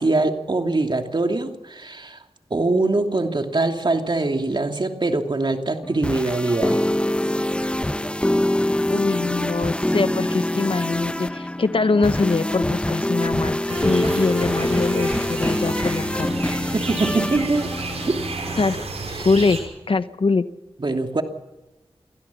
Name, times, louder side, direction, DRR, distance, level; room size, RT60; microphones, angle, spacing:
voice 1, 0.0-2.2 2.5-6.8 16.7-17.7 18.0-18.2 19.1-19.3 20.8-21.2, right 2 dB, 50° right, 4 dB, 2.8 m, -23 dB
sound 1, 5.8-18.6, left 1 dB, 10° left, 0.9 m, -24 dB
voice 2, 8.9-16.4 18.6-18.9 19.2-19.6 19.9-20.5, left 4 dB, 60° left, 12 dB, 1.0 m, -23 dB
sound 2, 13.7-19.6, right 3 dB, 85° right, 6.0 m, -32 dB
25.5 x 17.0 x 7.2 m, 1.0 s
cardioid pair, 45°, 11 cm